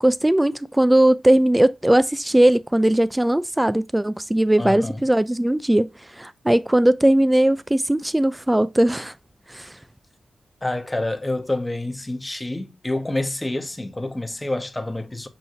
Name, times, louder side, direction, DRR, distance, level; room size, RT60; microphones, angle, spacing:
voice 1, 0.0-9.1 9.5-9.7, right 1 dB, 15° right, 0.3 m, -19 dB
voice 2, 4.6-5.1 10.6-15.3, left 2 dB, 20° left, 1.0 m, -28 dB
6.4 x 2.7 x 2.7 m
supercardioid pair, 45°, 0 cm